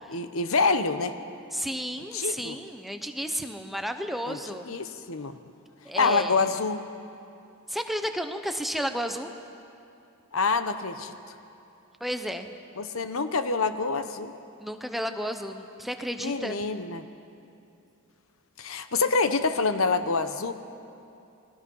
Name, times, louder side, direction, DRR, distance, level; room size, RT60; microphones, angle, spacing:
voice 1, 0.1-1.1 2.1-2.5 4.3-4.4 4.7-5.4 6.0-6.8 10.3-11.1 12.8-14.3 16.2-17.0 18.6-20.5, left 4 dB, 70° left, 10 dB, 1.0 m, -26 dB
voice 2, 1.5-4.7 5.8-6.5 7.7-9.3 12.0-12.5 14.6-16.6, equal, ahead, 6 dB, 0.8 m, -32 dB
28.5 x 21.0 x 5.5 m, 2.7 s
head